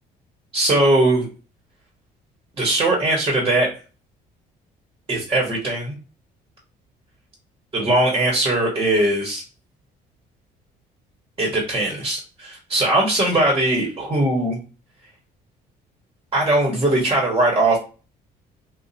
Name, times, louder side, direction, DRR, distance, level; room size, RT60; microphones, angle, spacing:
voice 1, 0.5-1.3 2.6-3.7 5.1-5.9 7.7-9.4 11.4-14.6 16.3-17.8, right 1 dB, 25° right, -1 dB, 1.2 m, -20 dB
2.8 x 2.4 x 4.0 m, 0.35 s
cardioid pair, 110°, 17 cm